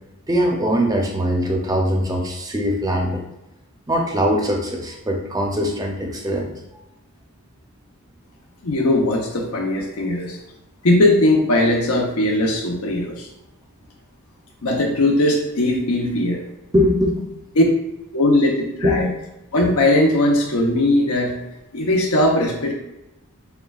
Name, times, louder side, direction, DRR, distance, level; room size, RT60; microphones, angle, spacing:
voice 1, 0.3-3.2 3.9-6.5 16.7-17.3 18.8-19.1, equal, 15° right, 1 dB, 0.5 m, -21 dB
voice 2, 8.6-10.4 10.8-13.3 14.6-16.4 17.6-17.7 18.1-19.1 19.5-21.3 21.7-22.7, left 1 dB, 85° left, 1 dB, 0.8 m, -19 dB
6.7 x 2.3 x 2.3 m, 0.91 s
head